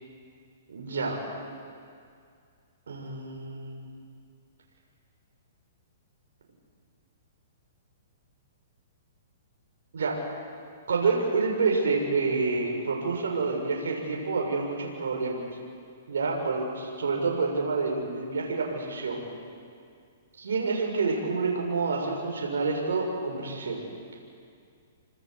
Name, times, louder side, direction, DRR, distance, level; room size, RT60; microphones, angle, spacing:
voice 1, 0.7-1.2 2.9-3.9 9.9-10.2 10.9-15.4 16.1-19.2 20.4-23.8, right 4 dB, 80° right, 0 dB, 6.6 m, -28 dB
28.5 x 26.0 x 8.1 m, 2.3 s
hypercardioid pair, 140°, 0 cm